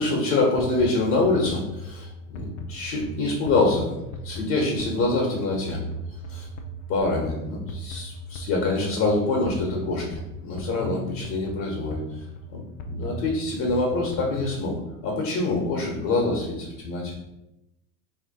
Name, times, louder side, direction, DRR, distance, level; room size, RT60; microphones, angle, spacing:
voice 1, 0.0-3.9 4.2-5.8 6.3-6.5 6.9-12.2 12.5-14.8 15.0-17.1, left 2 dB, 45° left, -1 dB, 1.1 m, -25 dB
sound 1, 0.6-14.8, equal, 70° left, 0.6 m, -38 dB
2.9 x 2.8 x 4.0 m, 0.91 s
hypercardioid pair, 95°, 39 cm